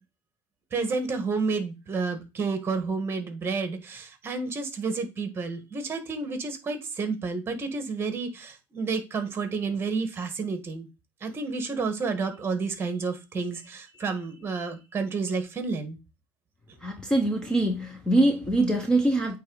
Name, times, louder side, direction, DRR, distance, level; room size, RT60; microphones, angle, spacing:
voice 1, 0.7-10.9 11.2-16.0, right 4 dB, 25° right, 1.6 m, -30 dB
voice 2, 16.8-19.4, right 1 dB, 10° left, 1.0 m, -23 dB
8.6 x 3.4 x 4.0 m
cardioid pair, 135°, 10 cm